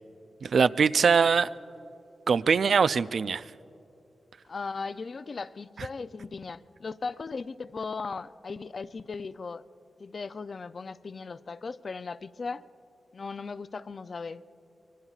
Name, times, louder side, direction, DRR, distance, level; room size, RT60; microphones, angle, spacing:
voice 1, 0.4-1.5 2.3-3.4, right 5 dB, 65° right, 14 dB, 0.3 m, -22 dB
voice 2, 4.4-9.7 10.0-12.6 13.1-14.4, left 4 dB, 50° left, 14 dB, 0.4 m, -37 dB
25.0 x 23.5 x 2.4 m, 2.8 s
wide cardioid pair, 90°, 0 cm